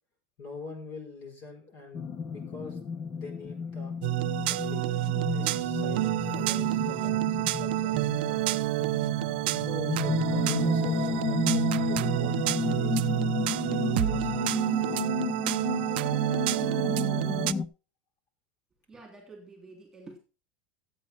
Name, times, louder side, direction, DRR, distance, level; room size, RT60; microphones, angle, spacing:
voice 1, 0.4-3.9 4.4-5.0 5.2-8.0 8.3-8.7 9.5-13.0 13.7-14.6 14.8-15.0, left 3 dB, 45° left, 4.3 m, -44 dB
sound 1, 1.9-17.7, left 5 dB, 20° left, 0.7 m, -32 dB
sound 2, 4.0-17.5, right 17 dB, 70° right, 0.5 m, -28 dB
voice 2, 18.9-20.2, right 3 dB, 10° right, 3.2 m, -48 dB
13.5 x 8.5 x 4.4 m
supercardioid pair, 165°, 6 cm